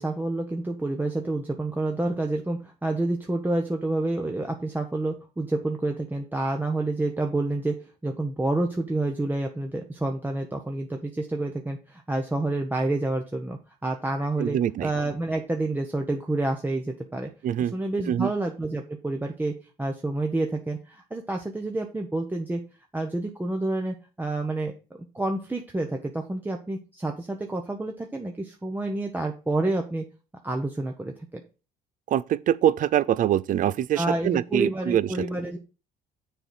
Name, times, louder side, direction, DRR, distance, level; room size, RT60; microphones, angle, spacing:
voice 1, 0.0-7.7 8.0-17.3 17.7-19.5 19.8-22.6 22.9-24.7 25.1-30.0 30.4-31.4 33.9-35.6, right 2 dB, 10° right, 0.8 m, -28 dB
voice 2, 14.4-14.9 17.4-17.7 18.1-18.3 32.1-35.3, right 10 dB, 50° right, 0.4 m, -24 dB
6.8 x 3.9 x 6.3 m
cardioid pair, 110°, 17 cm